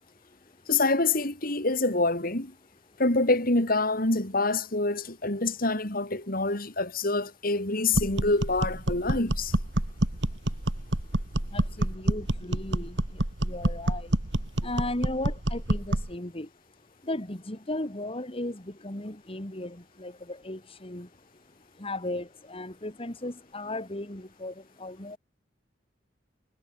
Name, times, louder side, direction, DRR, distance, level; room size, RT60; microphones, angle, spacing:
voice 1, 0.7-2.5 3.0-9.5, left 2 dB, 50° left, 4.5 m, -26 dB
sound 1, 7.9-16.1, right 1 dB, 75° right, 2.2 m, -28 dB
voice 2, 11.5-13.0 13.4-14.1 14.6-16.5 17.1-21.1 21.8-24.5 24.8-25.2, left 1 dB, 30° left, 2.9 m, -36 dB
head